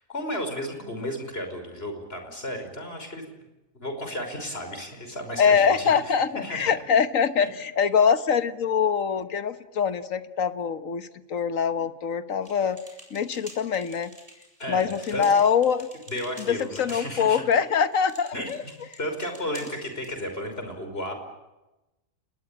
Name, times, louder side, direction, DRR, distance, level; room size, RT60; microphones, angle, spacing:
voice 1, 0.0-3.2 3.7-6.7 7.4-7.5 14.6-15.2 16.1-17.4 18.3-21.1, equal, 45° left, 6 dB, 5.8 m, -34 dB
voice 2, 5.4-12.8 13.1-14.1 14.7-15.9 16.5-18.6, left 7 dB, 75° left, 12 dB, 1.6 m, -23 dB
sound 1, 12.4-20.1, right 1 dB, 25° right, 6.4 m, -49 dB
30.0 x 20.5 x 8.8 m, 1.0 s
omnidirectional pair, 1.4 m